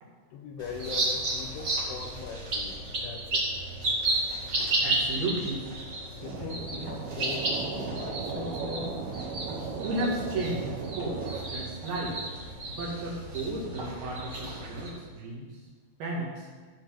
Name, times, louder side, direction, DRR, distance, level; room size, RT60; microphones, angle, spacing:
voice 1, 0.3-3.5 6.2-9.0, left 6 dB, 80° left, 4 dB, 3.0 m, -40 dB
sound 1, 0.6-14.9, right 2 dB, 40° right, 1.5 m, -33 dB
voice 2, 4.7-5.7 9.8-11.2 11.5-12.2 12.7-15.5 16.0-16.5, right 2 dB, 60° right, -3 dB, 3.1 m, -34 dB
sound 2, 6.2-11.4, right 5 dB, 80° right, 3.6 m, -36 dB
14.5 x 4.9 x 5.8 m, 1.5 s
omnidirectional pair, 5.9 m